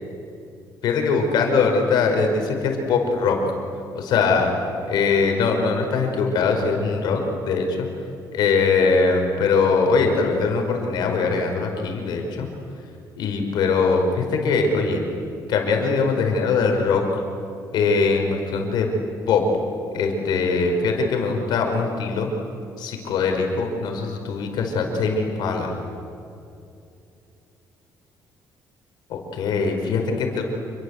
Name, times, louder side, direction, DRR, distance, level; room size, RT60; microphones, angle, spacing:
voice 1, 0.8-3.4 3.9-4.5 4.9-7.9 8.3-12.5 13.2-15.0 15.5-17.2 17.7-18.9 19.3-19.4 19.9-22.3 22.8-25.7 29.1-30.4, left 4 dB, 75° left, 3 dB, 5.1 m, -21 dB
28.5 x 22.0 x 8.3 m, 2.6 s
cardioid pair, 125°, 7 cm